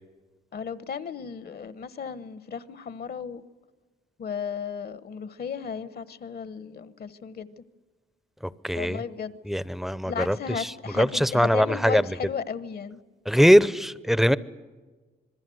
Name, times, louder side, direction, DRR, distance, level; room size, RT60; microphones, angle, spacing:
voice 1, 0.5-3.4 4.2-7.5 8.7-9.4 10.0-13.0, left 6 dB, 50° left, 15 dB, 1.2 m, -35 dB
voice 2, 8.6-9.0 9.4-12.1 13.3-14.4, equal, ahead, 17 dB, 0.7 m, -21 dB
26.5 x 21.5 x 7.9 m, 1.4 s
cardioid pair, 90°, 20 cm